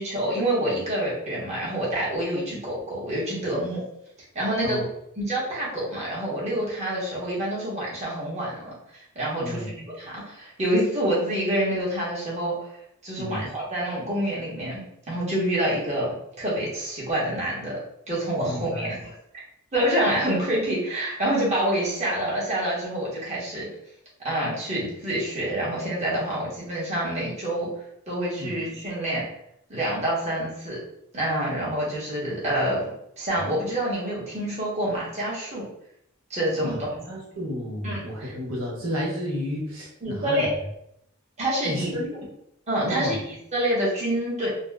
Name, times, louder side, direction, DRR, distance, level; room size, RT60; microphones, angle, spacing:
voice 1, 0.0-3.8 4.3-4.8 5.2-12.7 13.0-17.8 18.1-19.2 19.7-23.7 24.2-27.7 28.1-29.2 29.7-30.8 31.1-32.8 33.2-35.6 36.3-36.8 37.8-38.3 40.0-40.5 41.4-41.9 42.7-44.5, right 1 dB, 30° right, -6 dB, 1.1 m, -27 dB
voice 2, 9.4-9.7 13.2-13.5 18.4-18.9 28.4-28.6 36.6-40.5 41.6-42.1 42.8-43.2, equal, 80° right, -4 dB, 0.8 m, -32 dB
4.0 x 2.0 x 2.3 m, 0.76 s
head